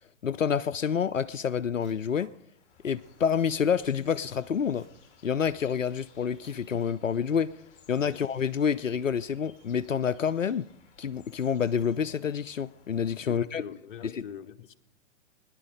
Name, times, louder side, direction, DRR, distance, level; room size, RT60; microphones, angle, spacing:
voice 1, 0.2-2.3 2.8-4.8 5.2-7.5 7.9-10.7 11.0-13.6 14.0-14.2, left 7 dB, 85° left, 13 dB, 0.6 m, -28 dB
sound 1, 1.3-2.3 2.6-2.7 2.9-3.4 3.7-5.0 5.2-7.4, right 4 dB, 65° right, 3.7 m, -60 dB
sound 2, 2.5-13.4, left 5 dB, 20° left, 2.6 m, -60 dB
voice 2, 13.2-14.7, left 8 dB, 40° left, 7 dB, 1.1 m, -43 dB
21.5 x 10.5 x 5.1 m, 0.75 s
figure-of-eight pair, 115°, 37 cm